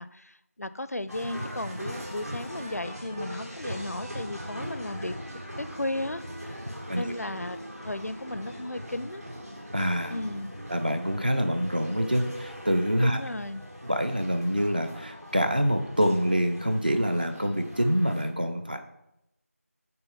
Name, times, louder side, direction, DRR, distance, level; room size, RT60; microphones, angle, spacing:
voice 1, 0.0-5.2 5.6-6.6 7.0-7.6 7.8-9.2 10.1-10.5 13.0-13.6, left 1 dB, 75° left, 14 dB, 0.5 m, -35 dB
sound 1, 1.1-18.3, equal, 80° right, 3.1 m, -40 dB
voice 2, 9.7-10.1 10.7-13.2 13.8-18.8, equal, 35° right, 6 dB, 0.6 m, -26 dB
9.0 x 3.5 x 5.2 m, 0.81 s
figure-of-eight pair, 175°, 8 cm